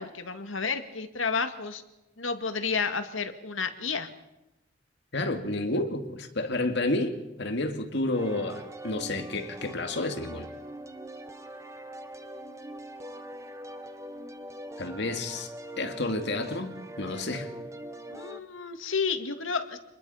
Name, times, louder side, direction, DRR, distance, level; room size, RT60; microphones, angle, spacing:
voice 1, 0.0-1.8 2.2-4.1 18.1-19.8, left 5 dB, 85° left, 7 dB, 2.1 m, -31 dB
voice 2, 5.1-10.5 14.8-17.5, left 2 dB, 60° left, 6 dB, 2.5 m, -30 dB
sound 1, 8.1-18.4, right 1 dB, 15° right, 1.3 m, -42 dB
27.0 x 21.0 x 5.7 m, 0.93 s
head